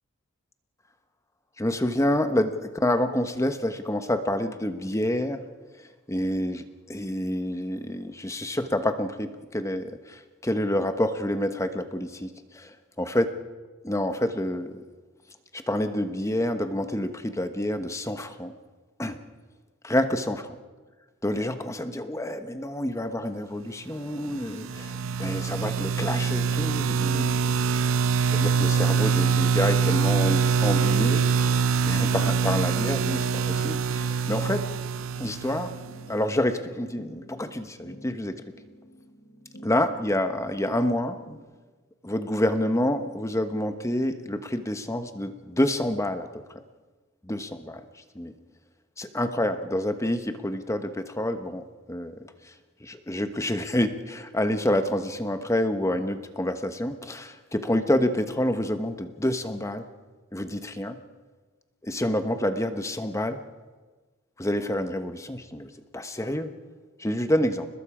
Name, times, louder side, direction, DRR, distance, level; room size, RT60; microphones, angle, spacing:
voice 1, 1.6-5.4 6.1-6.6 6.9-9.9 10.4-12.7 13.0-13.3 13.8-14.8 15.5-18.5 19.0-19.2 19.8-20.5 21.2-24.9 25.2-27.3 28.3-31.3 31.8-34.6 35.2-35.7 36.1-38.4 39.6-41.2 42.0-46.3 47.3-47.8 48.1-48.3 49.0-52.1 52.8-59.8 60.3-61.0 61.8-63.4 64.4-65.7 65.9-66.5 67.0-67.7, left 1 dB, 15° left, 8 dB, 1.1 m, -28 dB
sound 1, 24.3-36.1, right 6 dB, 75° right, 0.6 m, -24 dB
sound 2, 29.4-41.4, equal, 55° left, 3.1 m, -50 dB
30.0 x 20.5 x 5.0 m, 1.3 s
head